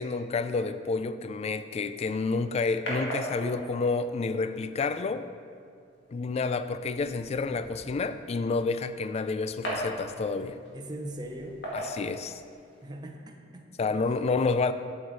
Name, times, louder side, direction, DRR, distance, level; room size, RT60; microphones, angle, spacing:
voice 1, 0.0-5.3 6.1-10.6 11.7-12.4 13.8-14.7, left 4 dB, 35° left, 11 dB, 0.3 m, -29 dB
sound 1, 1.9-12.9, equal, 60° left, 2.0 m, -41 dB
voice 2, 10.7-11.6 12.8-14.1 14.5-14.6, right 1 dB, 20° right, 3 dB, 0.7 m, -41 dB
7.8 x 7.1 x 4.0 m, 2.2 s
head